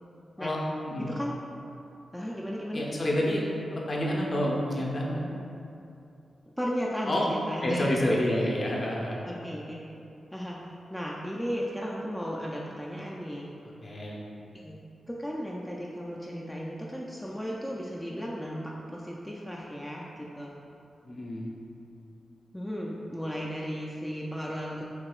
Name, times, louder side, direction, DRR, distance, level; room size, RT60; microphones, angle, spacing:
voice 1, 1.0-1.4 2.1-2.9 6.5-8.2 9.2-9.8 10.3-13.5 14.5-14.8 15.1-20.5 22.5-24.8, equal, 5° left, -4 dB, 0.4 m, -35 dB
voice 2, 2.7-3.4 3.7-5.2 7.1-7.3 7.6-9.2 13.8-14.2 21.0-21.5, left 1 dB, 45° left, -3 dB, 0.7 m, -28 dB
4.6 x 2.9 x 2.4 m, 2.7 s
cardioid pair, 55°, 0 cm